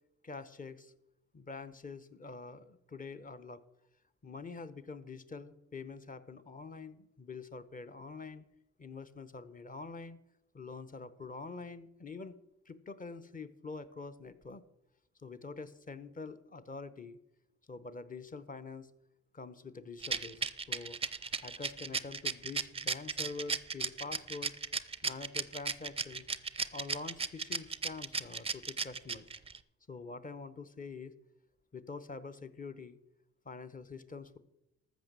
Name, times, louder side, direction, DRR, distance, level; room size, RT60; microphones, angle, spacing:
voice 1, 0.2-0.9 1.3-3.6 4.2-8.4 8.8-10.2 10.5-12.3 12.7-14.6 15.2-17.2 17.7-18.9 19.3-21.0 21.4-24.6 25.0-26.2 26.7-29.3 29.9-31.1 31.7-33.0 33.4-34.4, left 4 dB, 25° left, 11 dB, 0.9 m, -45 dB
Rattle, 20.0-29.6, right 5 dB, 20° right, 0.5 m, -35 dB
13.5 x 6.0 x 7.6 m, 0.87 s
cardioid pair, 90°, 30 cm